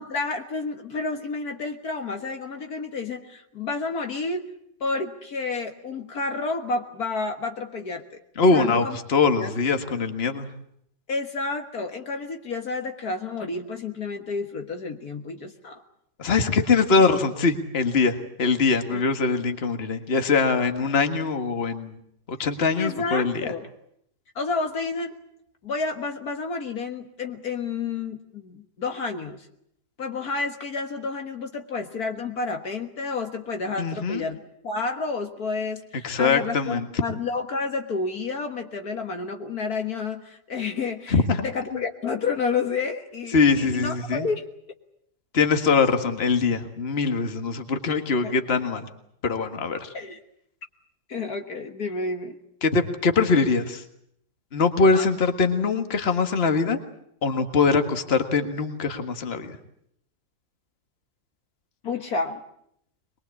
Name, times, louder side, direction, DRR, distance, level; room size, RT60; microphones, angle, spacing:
voice 1, 0.0-4.5 4.8-8.2 8.5-9.0 9.4-9.5 11.1-15.8 18.9-19.0 22.8-23.7 24.4-25.2 25.6-29.5 30.0-34.4 34.6-44.5 48.2-48.3 49.9-50.2 51.1-52.4 55.0-55.1 61.8-62.4, left 4 dB, 55° left, 5 dB, 2.0 m, -30 dB
voice 2, 8.4-10.5 16.2-22.0 22.3-23.4 33.8-34.3 36.0-36.9 41.1-41.4 43.3-44.3 45.3-48.9 49.2-49.9 52.6-53.8 54.5-56.8 57.2-59.6, left 4 dB, 35° left, 7 dB, 1.9 m, -22 dB
23.0 x 21.5 x 8.4 m, 0.72 s
omnidirectional pair, 1.9 m